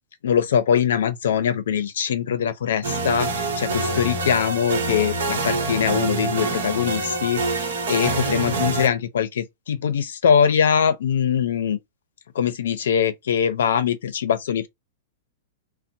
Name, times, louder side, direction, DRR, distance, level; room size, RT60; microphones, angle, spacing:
voice 1, 0.2-11.8 12.3-14.7, left 8 dB, 80° left, 0.5 m, -22 dB
sound 1, 2.8-8.9, right 3 dB, 85° right, 0.8 m, -26 dB
2.6 x 2.0 x 2.7 m
hypercardioid pair, 145°, 0 cm